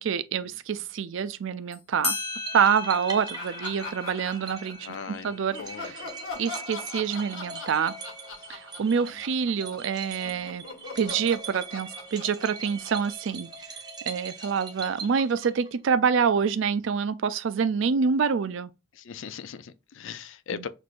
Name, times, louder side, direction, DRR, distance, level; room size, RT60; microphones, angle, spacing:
voice 1, 0.0-2.2 2.5-4.9 5.2-6.0 6.3-7.9 8.5-10.6 11.0-13.5 14.1-18.7 20.5-20.7, right 6 dB, 65° right, 0.4 m, -26 dB
sound 1, 1.7-1.8 2.0-7.1, left 3 dB, 30° left, 1.5 m, -37 dB
sound 2, 2.5-15.9, right 4 dB, 20° right, 0.7 m, -41 dB
Laughter, 3.3-5.1 5.5-9.9 10.2-13.8, left 4 dB, 90° left, 1.4 m, -42 dB
voice 2, 4.8-6.1 8.4-8.5 9.1-9.2 18.9-20.7, left 6 dB, 65° left, 0.4 m, -39 dB
6.0 x 2.6 x 2.5 m
head